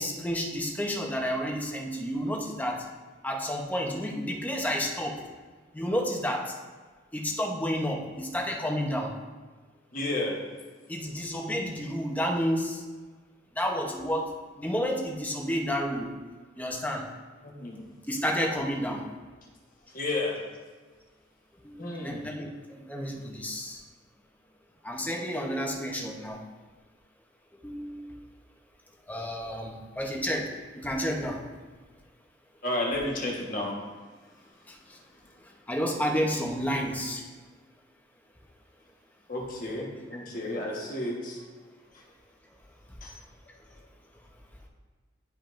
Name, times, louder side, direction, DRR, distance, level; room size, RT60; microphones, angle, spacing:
voice 1, 0.0-2.8 3.2-5.1 5.7-6.4 7.1-9.1 10.9-12.8 13.6-14.3 14.6-16.1 16.6-17.1 18.1-19.0 21.6-21.7 22.0-22.5 22.9-23.8 24.8-26.4 27.6-28.1 29.1-30.5 30.8-31.4 35.7-37.2, equal, 10° left, 0 dB, 0.8 m, -30 dB
voice 2, 9.9-10.3 17.4-17.8 19.9-20.4 21.8-22.3 32.6-33.7 39.3-41.4 43.0-43.1, left 2 dB, 45° left, -2 dB, 1.3 m, -32 dB
10.5 x 5.3 x 2.6 m, 1.4 s
head